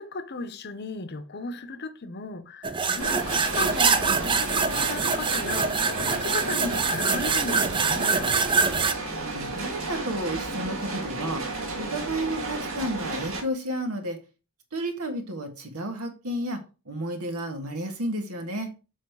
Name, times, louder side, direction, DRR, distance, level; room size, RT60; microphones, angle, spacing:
voice 1, 0.0-8.3, left 3 dB, 45° left, 0.8 m, -36 dB
sound 1, 2.6-8.9, right 4 dB, 20° right, 0.5 m, -24 dB
sound 2, 3.0-13.4, right 2 dB, 65° right, 1.9 m, -33 dB
voice 2, 9.2-11.4 11.8-14.2 14.7-16.6 16.9-18.7, right 1 dB, 80° right, 1.8 m, -31 dB
7.3 x 4.3 x 4.7 m
head